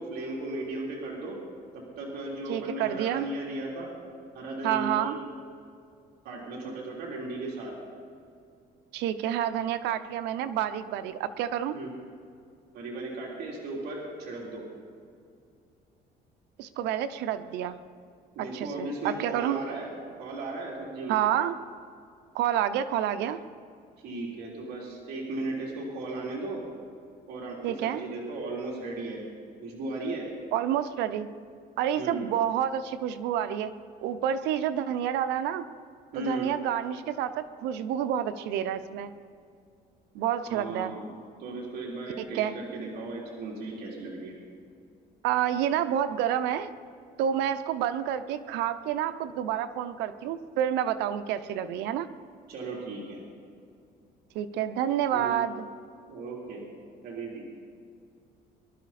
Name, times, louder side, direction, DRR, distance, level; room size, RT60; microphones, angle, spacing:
voice 1, 0.0-1.4 1.7-3.9 4.3-5.2 6.2-7.7 11.7-11.9 12.7-14.6 18.3-19.9 20.2-21.2 24.0-26.6 27.3-29.2 29.6-30.3 31.9-32.3 36.1-36.5 40.5-41.1 41.4-44.3 52.5-53.2 55.1-55.4 56.1-56.6 57.0-57.4, right 2 dB, 70° right, -3 dB, 3.4 m, -36 dB
voice 2, 2.5-3.3 4.6-5.2 8.9-11.8 16.6-17.8 18.5-19.6 21.1-21.5 22.3-23.4 27.6-28.0 30.5-31.3 31.8-33.7 34.0-35.7 36.2-39.1 40.1-41.0 42.2-42.5 45.2-46.7 47.2-52.1 54.3-55.7, right 10 dB, 90° right, 11 dB, 0.7 m, -29 dB
22.5 x 11.5 x 4.2 m, 2.4 s
cardioid pair, 110°, 17 cm